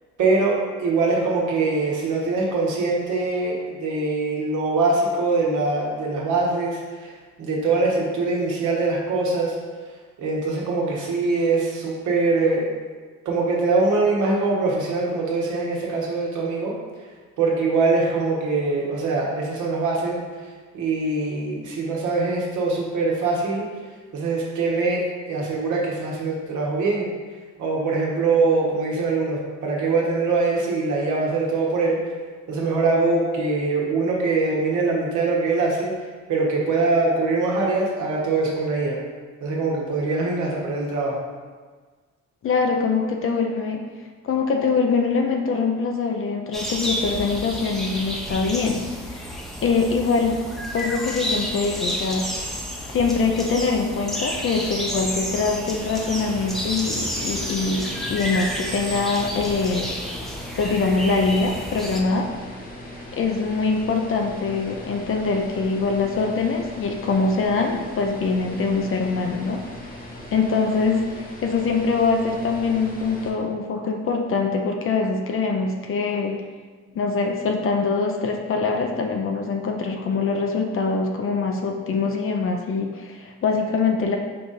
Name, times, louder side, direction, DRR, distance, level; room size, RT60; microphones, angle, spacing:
voice 1, 0.2-9.6 10.2-12.7 13.2-16.7 17.4-23.7 24.1-27.1 27.6-32.0 32.5-35.9 36.3-39.0 39.4-41.2, right 3 dB, 80° right, -3 dB, 1.1 m, -23 dB
voice 2, 42.4-43.8 44.2-50.4 50.7-52.4 52.9-59.9 60.6-62.3 63.1-69.6 70.3-76.4 76.9-84.2, left 4 dB, 45° left, 2 dB, 0.5 m, -23 dB
sound 1, 46.5-62.0, equal, ahead, 0.6 m, -31 dB
sound 2, 55.8-73.3, left 1 dB, 30° left, 0.9 m, -39 dB
4.7 x 2.4 x 4.0 m, 1.4 s
cardioid pair, 90°, 30 cm